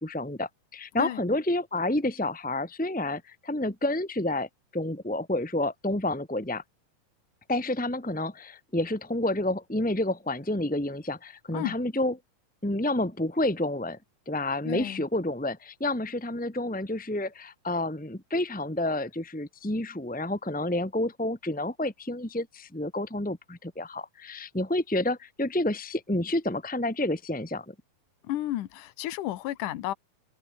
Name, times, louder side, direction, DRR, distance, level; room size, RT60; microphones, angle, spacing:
voice 1, 0.0-6.6 7.5-12.1 12.6-14.0 14.2-27.7, left 1 dB, 5° left, 0.7 m, -29 dB
voice 2, 14.6-15.0 28.2-29.9, left 14 dB, 75° left, 2.6 m, -32 dB
omnidirectional pair, 3.9 m